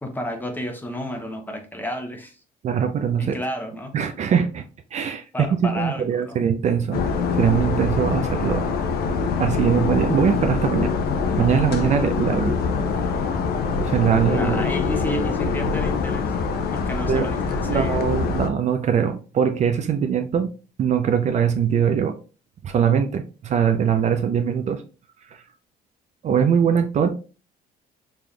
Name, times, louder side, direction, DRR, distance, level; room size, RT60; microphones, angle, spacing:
voice 1, 0.0-2.4 3.2-4.0 5.3-6.5 14.2-16.3 16.7-18.2, left 1 dB, 10° left, 0.7 m, -31 dB
voice 2, 2.6-3.3 3.9-4.6 4.9-5.3 5.6-7.0 7.3-8.7 9.4-10.9 11.4-12.6 13.8-14.6 17.1-17.3 17.6-20.5 20.8-22.2 22.6-24.8 25.3-25.4 26.2-27.1, right 7 dB, 45° right, 0.4 m, -21 dB
sound 1, 6.9-18.5, left 5 dB, 65° left, 0.6 m, -24 dB
3.9 x 3.3 x 2.3 m
cardioid pair, 110°, 17 cm